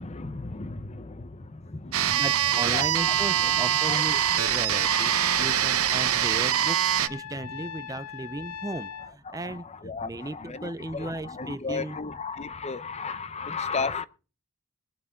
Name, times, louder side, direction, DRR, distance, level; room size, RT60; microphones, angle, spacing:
voice 1, 0.0-2.2 2.5-3.5 3.8-4.6 9.3-14.0, left 4 dB, 30° left, 0.7 m, -35 dB
sound 1, 1.9-7.1, right 10 dB, 70° right, 0.8 m, -24 dB
voice 2, 2.1-12.0, right 2 dB, 15° right, 0.5 m, -36 dB
Trumpet, 4.1-9.1, left 8 dB, 85° left, 0.7 m, -39 dB
22.0 x 8.1 x 3.7 m
head